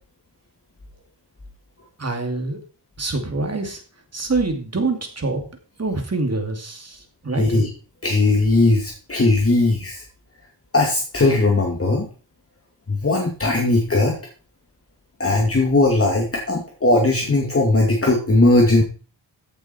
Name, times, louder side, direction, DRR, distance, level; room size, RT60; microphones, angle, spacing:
voice 1, 2.0-2.6 3.0-3.8 4.1-5.4 5.8-7.5, right 3 dB, 35° right, 5 dB, 2.6 m, -25 dB
voice 2, 7.4-7.7 8.0-10.0 10.7-12.1 12.9-14.2 15.2-18.8, left 2 dB, 30° left, 0 dB, 2.3 m, -18 dB
15.0 x 7.0 x 4.5 m, 0.37 s
wide cardioid pair, 115°, 43 cm